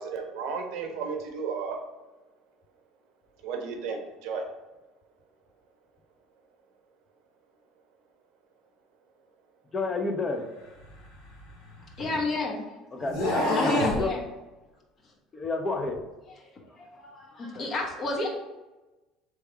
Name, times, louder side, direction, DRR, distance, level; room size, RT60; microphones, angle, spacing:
voice 1, 0.0-1.8 3.4-4.4, right 5 dB, 70° right, 4 dB, 0.7 m, -33 dB
voice 2, 9.7-10.4 12.9-14.1 15.3-16.0 17.6-17.7, left 2 dB, 25° left, 5 dB, 0.6 m, -29 dB
sound 1, 10.8-12.3 13.0-14.0, left 1 dB, 85° left, 1.4 m, -30 dB
voice 3, 12.0-14.2 16.4-18.3, left 2 dB, 45° left, 0 dB, 1.1 m, -31 dB
3.5 x 3.3 x 4.4 m, 1.1 s
hypercardioid pair, 70°, 0 cm